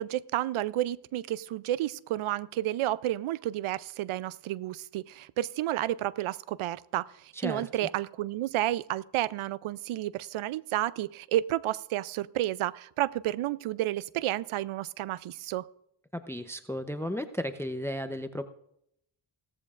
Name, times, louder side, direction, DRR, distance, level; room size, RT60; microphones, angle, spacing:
voice 1, 0.0-15.7, right 14 dB, 75° right, 19 dB, 0.6 m, -31 dB
voice 2, 7.3-7.9 16.1-18.5, equal, 5° left, 10 dB, 0.7 m, -34 dB
17.0 x 14.0 x 2.5 m, 0.75 s
cardioid pair, 70°, 50 cm